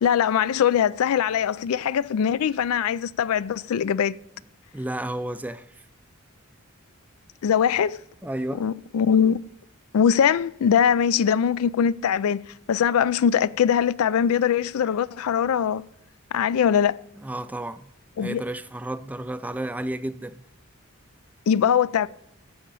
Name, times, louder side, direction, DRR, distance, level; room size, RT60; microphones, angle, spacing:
voice 1, 0.0-4.1 7.4-8.0 8.5-9.5 9.9-12.4 12.7-15.8 16.3-17.0 18.2-18.4 21.5-22.1, left 8 dB, 85° left, 0.3 m, -21 dB
voice 2, 4.7-5.7 8.2-8.6 17.2-17.9 18.2-20.4, right 1 dB, 5° right, 0.3 m, -32 dB
14.0 x 5.0 x 5.5 m
head